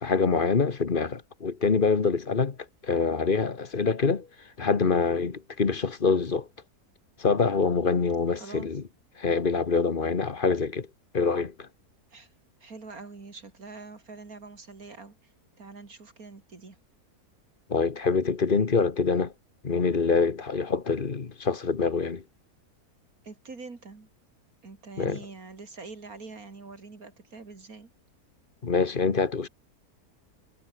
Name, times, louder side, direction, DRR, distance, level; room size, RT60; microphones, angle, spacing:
voice 1, 0.0-2.6 2.8-4.3 4.6-6.5 7.2-8.8 9.2-10.9 11.1-11.7 17.7-19.3 19.6-22.2 25.0-25.2 28.6-29.5, left 4 dB, 35° left, 1.3 m, -25 dB
voice 2, 8.3-8.7 12.1-12.3 12.6-15.3 15.6-16.8 23.2-24.1 24.6-27.9, right 3 dB, 65° right, 3.4 m, -44 dB
omnidirectional pair, 1.7 m